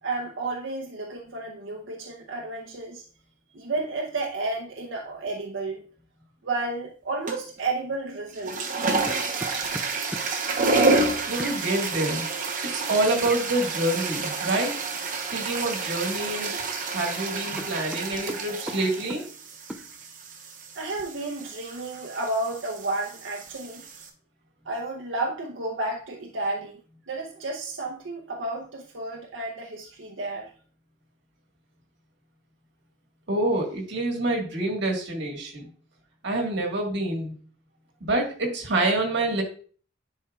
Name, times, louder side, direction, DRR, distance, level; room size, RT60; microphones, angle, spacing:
voice 1, 0.0-3.0 3.5-5.8 6.4-8.8 15.4-15.5 20.8-23.8 24.6-26.8 27.1-30.5, right 2 dB, 85° right, -1 dB, 0.8 m, -32 dB
sound 1, 7.3-7.6 8.3-24.1, right 3 dB, 45° right, 0.9 m, -29 dB
sound 2, 8.5-10.3 11.4-11.6 13.3-13.5 15.5-15.7 16.1-16.8 17.1-17.2 17.5-19.3 19.7-19.9, right 1 dB, 5° right, 0.4 m, -38 dB
voice 2, 11.3-12.3 12.7-14.7 15.3-16.6 16.9-19.2 33.3-35.6 36.2-37.4 38.0-39.4, right 2 dB, 65° right, 1 dB, 1.7 m, -27 dB
10.5 x 4.5 x 2.4 m, 0.43 s
head